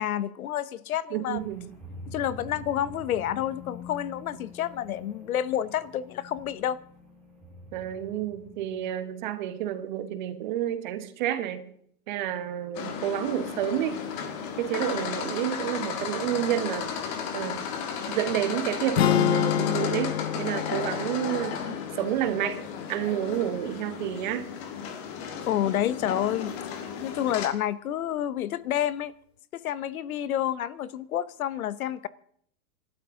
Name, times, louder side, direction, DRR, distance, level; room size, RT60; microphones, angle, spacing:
voice 1, 0.0-1.5 2.1-6.8 25.5-26.6 27.0-29.1 29.5-32.1, left 11 dB, 65° left, 17 dB, 1.0 m, -29 dB
voice 2, 1.1-1.7 7.7-11.7 12.1-14.0 14.6-16.9 17.3-17.7 18.1-21.6 22.0-24.5, right 11 dB, 30° right, 10 dB, 1.1 m, -30 dB
sound 1, 1.3-9.0, left 2 dB, 5° left, 3.9 m, -46 dB
sound 2, 12.7-27.5, left 7 dB, 25° left, 1.5 m, -34 dB
sound 3, 19.0-23.1, left 11 dB, 45° left, 0.6 m, -28 dB
28.0 x 12.5 x 3.7 m, 0.66 s
supercardioid pair, 175°, 46 cm